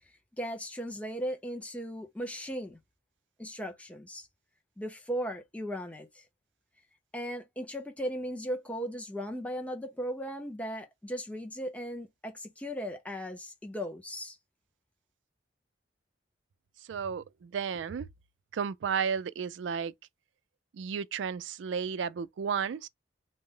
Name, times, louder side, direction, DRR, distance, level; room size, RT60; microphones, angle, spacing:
voice 1, 0.4-2.8 3.4-4.3 4.8-6.2 7.1-14.4, equal, 5° left, 0.7 m, -37 dB
voice 2, 16.9-18.1 18.5-19.9 20.7-22.9, right 6 dB, 75° right, 0.3 m, -33 dB
3.9 x 2.1 x 3.7 m
head